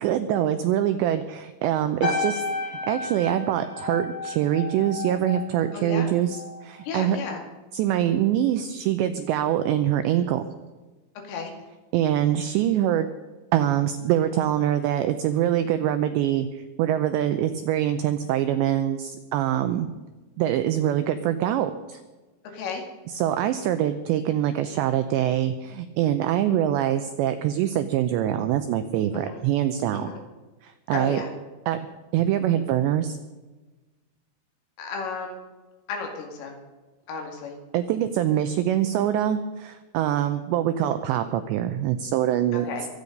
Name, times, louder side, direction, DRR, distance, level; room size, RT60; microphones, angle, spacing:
voice 1, 0.0-7.2 7.7-10.4 11.9-13.1 13.5-19.9 20.4-22.0 23.1-30.1 30.6-31.2 31.7-31.8 32.1-33.2 37.7-42.7, right 11 dB, 85° right, 9 dB, 2.5 m, -24 dB
sound 1, 2.0-6.6 6.9-7.3, left 2 dB, 20° left, 5.7 m, -32 dB
voice 2, 5.7-6.1 6.9-7.4 11.2-11.5 22.5-22.8 29.1-29.4 29.9-30.2 30.9-31.3 34.8-35.4 35.9-36.5 37.1-37.5 42.5-42.9, left 5 dB, 75° left, 2 dB, 4.7 m, -33 dB
24.0 x 8.6 x 5.3 m, 1.2 s
omnidirectional pair, 5.9 m